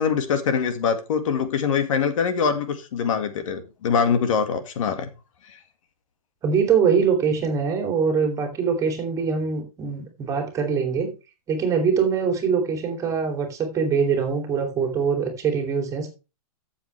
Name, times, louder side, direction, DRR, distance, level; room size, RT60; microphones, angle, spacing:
voice 1, 0.0-5.1 5.5-5.6, left 6 dB, 60° left, 2.0 m, -23 dB
voice 2, 6.4-11.1 11.5-16.1, right 6 dB, 15° right, 2.9 m, -23 dB
13.5 x 7.4 x 3.4 m
hypercardioid pair, 150°, 19 cm